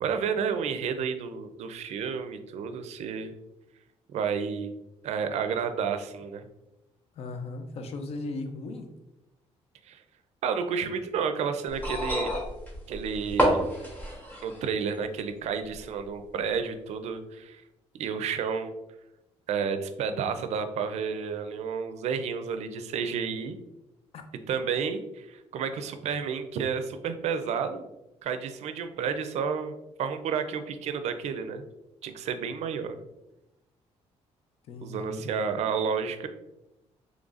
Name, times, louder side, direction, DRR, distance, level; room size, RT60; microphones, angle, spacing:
voice 1, 0.0-3.3 4.1-4.7 5.0-6.5 9.9-10.0 10.4-12.3 12.9-13.6 14.4-17.6 18.0-18.7 19.5-23.6 24.5-27.9 28.2-31.6 32.0-33.0 34.8-36.3, right 6 dB, 70° right, 8 dB, 0.4 m, -31 dB
voice 2, 7.2-8.9 24.1-24.2 34.7-35.3, left 2 dB, 60° left, 6 dB, 0.5 m, -37 dB
sound 1, 11.7-14.7 15.7-15.8, equal, 15° left, 1.1 m, -28 dB
3.9 x 3.2 x 2.4 m, 0.93 s
cardioid pair, 130°, 12 cm